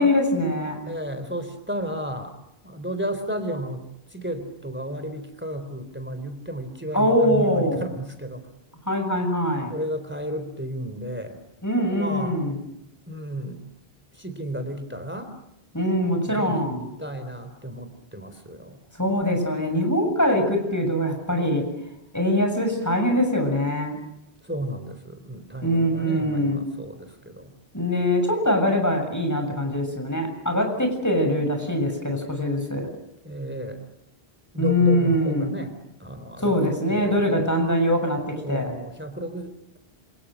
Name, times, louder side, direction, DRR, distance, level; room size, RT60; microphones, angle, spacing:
voice 1, 0.0-0.8 6.9-7.8 8.9-9.7 11.6-12.6 15.7-16.8 19.0-21.7 22.1-24.0 25.6-26.6 27.7-32.9 34.6-35.5 36.4-38.7, left 1 dB, 15° left, 4 dB, 7.0 m, -23 dB
voice 2, 0.9-2.4 2.6-3.8 4.1-8.5 9.7-11.4 11.9-12.4 13.1-13.6 14.1-15.3 16.3-18.8 24.4-27.5 33.2-33.8 34.5-35.7 36.0-37.2 38.4-39.8, equal, 10° right, 8 dB, 3.8 m, -33 dB
28.0 x 27.5 x 6.4 m, 0.83 s
omnidirectional pair, 1.0 m